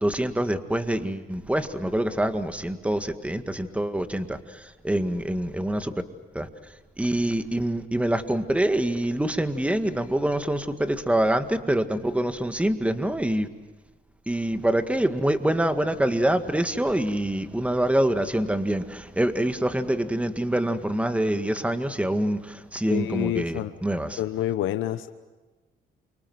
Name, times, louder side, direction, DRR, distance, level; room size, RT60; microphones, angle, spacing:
voice 1, 0.0-4.4 4.8-5.9 6.4-6.5 7.0-13.5 14.3-24.2, right 1 dB, 5° right, 8 dB, 1.9 m, -25 dB
voice 2, 22.9-23.7 24.2-25.1, left 12 dB, 85° left, 9 dB, 1.0 m, -28 dB
29.0 x 25.0 x 8.0 m, 1.2 s
cardioid pair, 90°, 20 cm